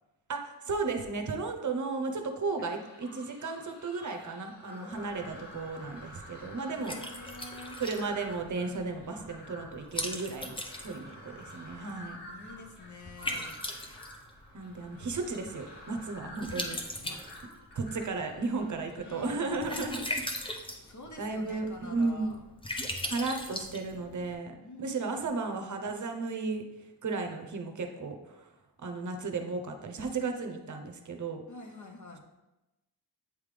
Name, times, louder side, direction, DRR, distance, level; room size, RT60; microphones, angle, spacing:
voice 1, 0.3-7.2 7.8-12.2 14.5-16.8 17.7-20.0 21.2-22.3 23.0-26.7 27.0-28.5 28.8-31.4, right 3 dB, 50° right, 5 dB, 0.7 m, -34 dB
sound 1, 2.6-19.5, left 1 dB, 85° left, 1.8 m, -50 dB
Liquid, 4.9-24.3, left 1 dB, 15° left, 0.7 m, -41 dB
voice 2, 6.7-7.8 12.3-13.7 17.0-17.2 19.0-19.7 20.8-22.4 24.6-25.2 31.5-32.2, left 2 dB, 50° left, 3 dB, 0.9 m, -47 dB
8.2 x 3.5 x 3.3 m, 1.0 s
cardioid pair, 95°, 39 cm